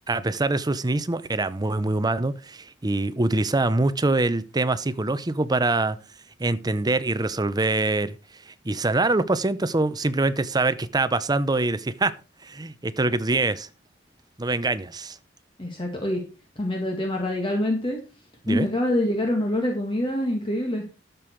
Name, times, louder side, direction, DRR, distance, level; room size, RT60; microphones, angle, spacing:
voice 1, 0.1-6.0 6.4-8.2 8.6-12.1 12.4-13.7 14.4-15.2 18.4-18.7, right 2 dB, 20° right, 0.7 m, -24 dB
voice 2, 15.6-16.2 16.6-18.0 18.5-20.8, left 1 dB, 30° left, 1.9 m, -25 dB
12.5 x 6.9 x 4.5 m
head